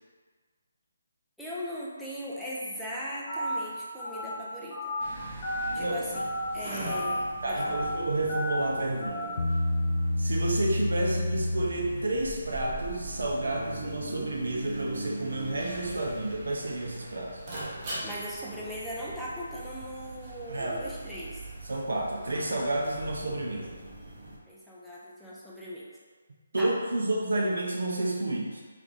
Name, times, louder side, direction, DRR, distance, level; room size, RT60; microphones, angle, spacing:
voice 1, 1.4-4.9 5.7-6.2 6.5-7.8 18.0-21.4 24.5-25.9 26.6-26.7, equal, ahead, -8 dB, 0.5 m, -39 dB
Telephone, 3.3-3.5 4.0-4.3 4.7-5.0 5.4-5.7 6.1-6.4 6.9-7.1 7.6-7.8 8.3-8.6 9.0-9.3, left 1 dB, 25° left, 1.3 m, -32 dB
sound 1, 5.0-24.4, right 2 dB, 30° right, 0.8 m, -41 dB
voice 2, 7.4-9.4 10.2-17.4 20.5-20.8 21.7-23.8 26.5-28.6, right 2 dB, 75° right, -1 dB, 0.6 m, -30 dB
Bass guitar, 9.4-12.8, left 1 dB, 65° left, 0.4 m, -29 dB
3.2 x 2.5 x 3.2 m, 1.5 s
figure-of-eight pair, 155°, 0 cm